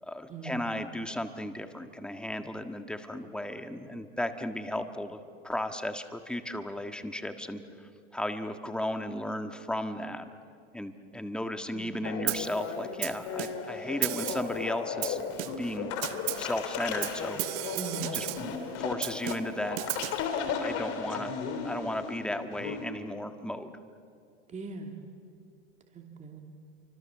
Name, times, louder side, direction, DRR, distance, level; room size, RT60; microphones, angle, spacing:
voice 1, 0.0-7.6 8.1-10.3 10.7-15.2 15.6-15.9 16.4-17.8 18.1-19.8 20.6-21.3 21.6-23.7, left 1 dB, 5° left, 7 dB, 1.6 m, -35 dB
sound 1, 12.0-22.8, left 6 dB, 50° left, 3.7 m, -35 dB
Snare drum, 12.3-12.6 13.0-13.7 14.0-14.6 15.0-15.7 16.0-16.5 17.0-18.5 19.0-20.3, right 21 dB, 60° right, 0.8 m, -34 dB
voice 2, 17.7-18.1 24.5-25.0 25.9-26.4, right 4 dB, 20° right, 2 dB, 2.7 m, -40 dB
29.0 x 25.0 x 7.3 m, 2.4 s
hypercardioid pair, 115°, 32 cm